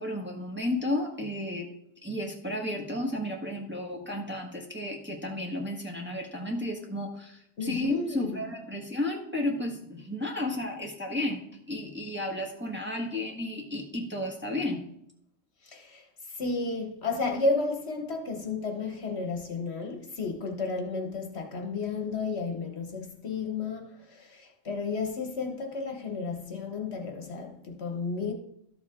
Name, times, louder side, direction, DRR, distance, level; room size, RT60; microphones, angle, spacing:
voice 1, 0.0-1.7 2.0-14.8, left 1 dB, 10° right, 1.3 m, -33 dB
voice 2, 7.6-8.4 15.6-28.3, left 3 dB, 55° left, 1.3 m, -32 dB
12.5 x 7.2 x 3.7 m
omnidirectional pair, 1.3 m